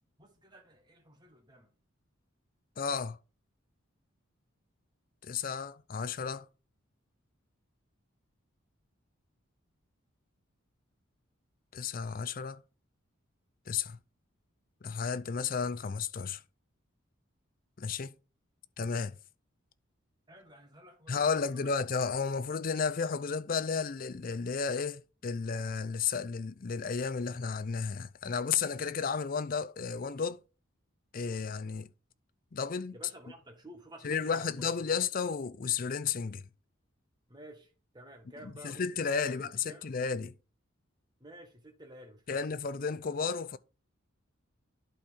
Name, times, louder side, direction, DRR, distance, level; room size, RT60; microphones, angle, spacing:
voice 1, 0.2-1.7 20.3-21.2 21.5-21.7 32.9-35.0 37.3-39.9 41.2-42.4, right 1 dB, 20° right, 1.6 m, -52 dB
voice 2, 2.8-3.2 5.2-6.5 11.7-12.6 13.7-14.0 14.8-16.4 17.8-18.1 18.8-19.2 21.1-30.4 31.1-31.9 32.5-32.9 34.0-36.5 38.4-40.3 42.3-43.6, left 5 dB, 40° left, 0.5 m, -33 dB
11.5 x 4.3 x 3.7 m
head